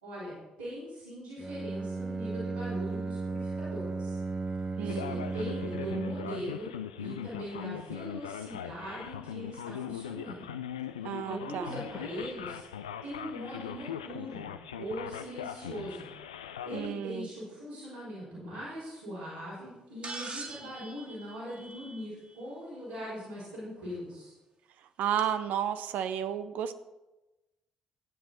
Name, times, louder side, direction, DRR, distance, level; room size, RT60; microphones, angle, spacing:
voice 1, 0.0-4.2 4.8-6.7 7.0-10.5 11.0-12.6 13.0-16.1 16.6-24.3, equal, 90° right, -15 dB, 4.7 m, -41 dB
Bowed string instrument, 1.4-6.5, right 3 dB, 25° right, 1.0 m, -35 dB
voice 2, 4.8-5.2 11.0-11.7 16.7-17.3 25.0-26.7, right 9 dB, 65° right, 11 dB, 0.6 m, -32 dB
Male speech man speaking, 4.9-16.9, left 9 dB, 85° left, 0.4 m, -40 dB
sound 1, 20.0-22.3 23.9-24.0 25.2-25.3, right 3 dB, 40° right, 2.1 m, -43 dB
13.5 x 9.4 x 4.3 m, 1.0 s
figure-of-eight pair, 40°, 3 cm